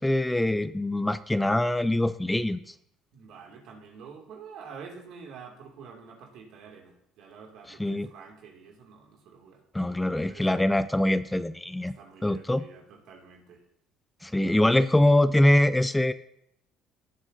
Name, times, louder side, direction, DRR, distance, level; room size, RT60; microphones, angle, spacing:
voice 1, 0.0-2.7 7.8-8.1 9.7-11.9 12.2-12.6 14.2-16.1, left 1 dB, 10° left, 14 dB, 0.3 m, -23 dB
voice 2, 3.1-9.6 9.9-10.4 11.9-13.6, right 6 dB, 70° right, 1 dB, 2.3 m, -47 dB
17.0 x 7.4 x 2.7 m, 0.76 s
supercardioid pair, 80°, 0 cm